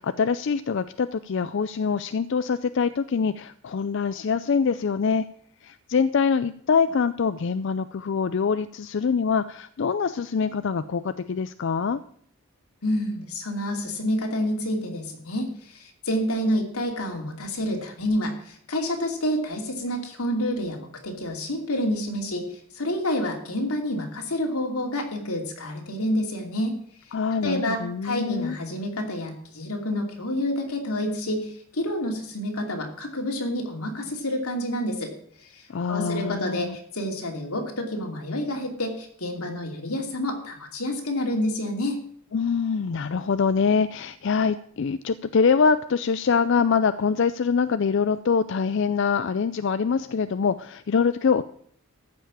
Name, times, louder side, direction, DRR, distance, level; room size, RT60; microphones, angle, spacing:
voice 1, 0.0-5.3 5.6-12.0 27.1-28.6 35.7-36.8 42.3-51.4, left 5 dB, 55° left, 13 dB, 0.4 m, -24 dB
voice 2, 12.8-26.8 27.3-35.1 35.4-42.0, left 1 dB, 85° left, 2 dB, 2.8 m, -28 dB
14.0 x 5.7 x 8.6 m, 0.62 s
head